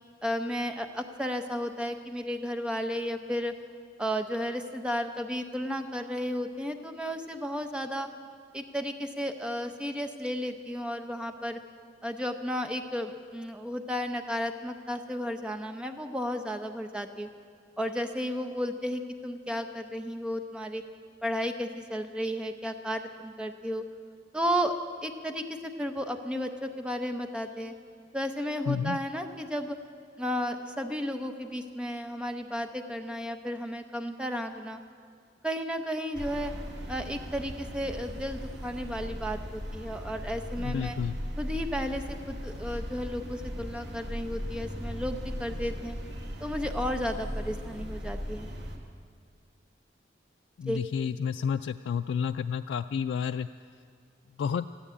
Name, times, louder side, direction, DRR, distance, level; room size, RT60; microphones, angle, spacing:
voice 1, 0.2-3.5 4.0-8.1 8.5-11.6 12.0-17.3 17.8-20.8 21.2-23.8 24.3-24.8 25.0-27.7 28.1-29.8 30.2-34.8 35.4-36.5 36.9-41.0 41.4-46.0 46.4-48.5 50.7-50.8, equal, 5° right, 6 dB, 0.6 m, -33 dB
voice 2, 28.7-29.0 40.6-41.2 50.6-53.5 54.4-54.6, left 7 dB, 80° left, 8 dB, 0.3 m, -30 dB
sound 1, 36.1-48.8, equal, 70° right, 2.2 m, -37 dB
14.0 x 10.0 x 9.7 m, 2.1 s
head